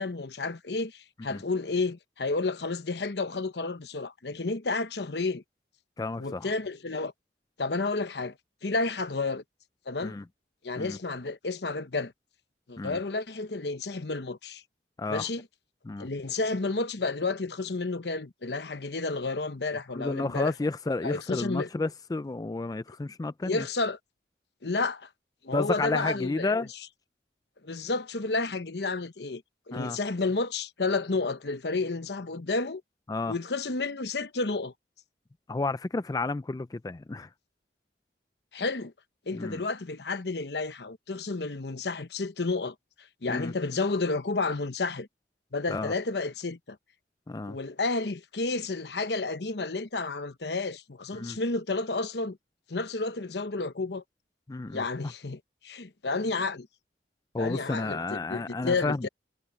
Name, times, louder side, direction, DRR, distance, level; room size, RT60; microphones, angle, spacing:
voice 1, 0.0-5.4 6.2-7.1 7.6-8.3 8.6-9.4 9.9-10.2 10.6-12.1 12.7-14.6 15.1-15.4 16.0-20.5 21.0-21.7 23.4-24.0 24.6-25.1 25.4-26.7 27.6-29.4 29.7-32.8 33.3-34.7 38.5-38.9 39.3-42.7 43.2-45.1 45.5-46.8 47.5-52.4 52.7-54.0 54.7-56.7 57.4-59.1, left 3 dB, 70° left, 1.0 m, -31 dB
voice 2, 6.0-6.5 10.0-10.2 10.8-11.0 12.8-13.0 15.0-15.3 15.9-16.1 19.9-23.7 25.5-26.7 29.7-30.0 33.1-33.3 35.5-37.3 39.3-39.6 43.3-43.5 45.7-45.9 47.3-47.6 51.1-51.4 54.5-54.8 57.3-59.1, left 3 dB, 20° left, 0.4 m, -31 dB
head